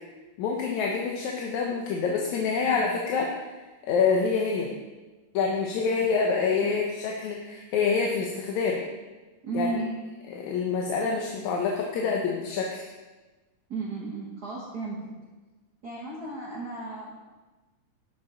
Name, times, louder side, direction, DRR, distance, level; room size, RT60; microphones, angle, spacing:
voice 1, 0.4-3.4 3.9-4.7 5.3-8.8 9.5-9.8 10.3-12.9, left 5 dB, 80° left, 0 dB, 2.2 m, -26 dB
voice 2, 9.4-9.9 13.7-15.0 15.8-17.2, right 3 dB, 50° right, -5 dB, 1.2 m, -34 dB
10.0 x 7.8 x 3.9 m, 1.2 s
omnidirectional pair, 3.5 m